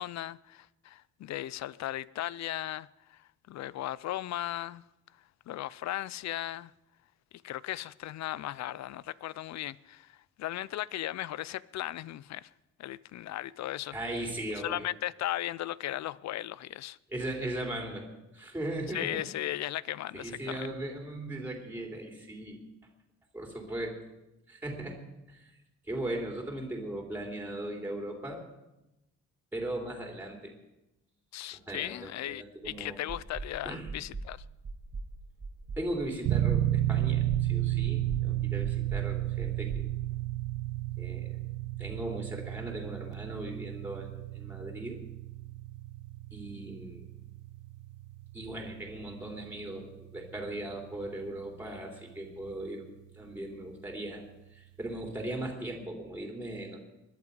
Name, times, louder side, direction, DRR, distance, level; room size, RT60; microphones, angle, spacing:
voice 1, 0.0-4.8 5.5-6.7 7.4-12.5 12.8-14.0 14.6-17.0 18.9-20.7 31.3-34.4, left 14 dB, 60° left, 0.5 m, -37 dB
voice 2, 13.9-14.9 17.1-18.1 18.3-19.2 20.1-22.6 23.3-24.0 24.5-25.0 25.3-25.5 25.9-28.4 29.5-30.5 31.5-33.0 33.6-33.9 35.8-39.9 41.0-41.4 41.8-45.0 46.3-47.1 48.3-52.9 53.1-54.2 54.5-56.8, right 1 dB, 5° right, 3.0 m, -38 dB
sound 1, 32.6-32.7 33.1-33.5 33.9-34.3 34.6-35.1 35.4-35.8 36.2-36.6 37.0-37.5 37.8-38.2 38.6-39.1 39.4-40.6, right 3 dB, 30° right, 1.4 m, -39 dB
sound 2, 36.3-53.0, right 14 dB, 80° right, 0.8 m, -33 dB
21.0 x 11.0 x 5.3 m
cardioid pair, 135°, 30 cm